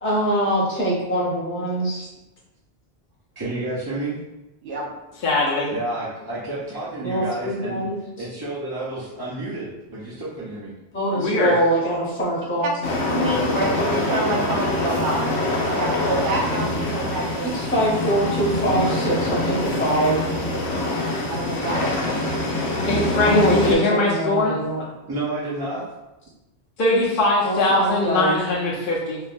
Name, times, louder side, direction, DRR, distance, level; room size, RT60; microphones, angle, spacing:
voice 1, 0.0-2.1 7.0-8.0 10.9-12.7 17.5-20.2 23.2-24.8 27.4-28.3, right 1 dB, 15° left, -6 dB, 0.7 m, -23 dB
voice 2, 3.4-4.1 5.7-7.9 8.2-10.7 21.6-22.0 25.1-25.8, right 2 dB, 35° right, -8 dB, 0.4 m, -30 dB
voice 3, 5.2-5.7 11.2-11.5 22.8-24.6 26.8-29.2, left 2 dB, 60° left, -4 dB, 0.7 m, -21 dB
sound 1, 12.8-23.8, left 1 dB, 85° left, 0.9 m, -24 dB
voice 4, 13.1-15.2 15.7-17.6 21.3-21.9, right 2 dB, 70° right, -2 dB, 0.8 m, -27 dB
3.2 x 2.1 x 2.5 m, 0.99 s
omnidirectional pair, 1.1 m